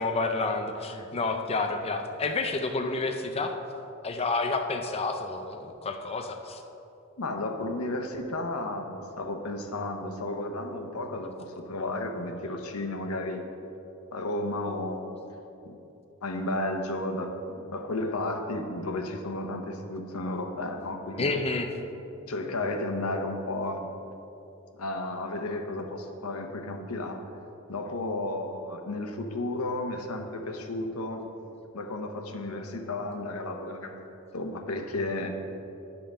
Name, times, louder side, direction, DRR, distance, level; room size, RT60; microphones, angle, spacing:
voice 1, 0.0-3.5 4.0-6.6 21.2-21.7, left 3 dB, 30° left, 4 dB, 0.5 m, -29 dB
voice 2, 7.2-13.4 14.1-15.4 15.6-15.8 16.2-21.3 22.3-23.9 24.8-27.2 27.7-31.3 31.7-35.3, left 2 dB, 90° left, 5 dB, 0.9 m, -33 dB
10.0 x 5.6 x 5.5 m, 2.9 s
head